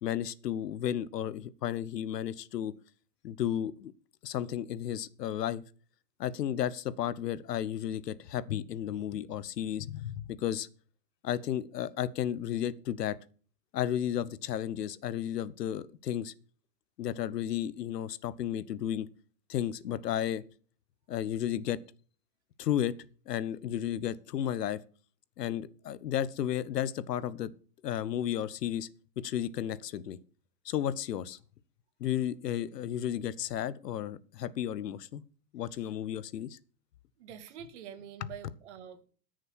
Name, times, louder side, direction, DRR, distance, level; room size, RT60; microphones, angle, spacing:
voice 1, 0.0-2.7 3.2-3.9 4.2-5.6 6.2-10.7 11.2-13.2 13.7-16.3 17.0-19.1 19.5-20.4 21.1-21.8 22.6-23.0 23.3-24.8 25.4-27.5 27.8-28.9 29.2-30.2 30.6-31.4 32.0-35.2 35.5-36.6, left 10 dB, 80° left, 1.1 m, -33 dB
voice 2, 37.2-39.0, right 9 dB, 45° right, 2.1 m, -46 dB
14.0 x 6.5 x 6.3 m
hypercardioid pair, 165°, 47 cm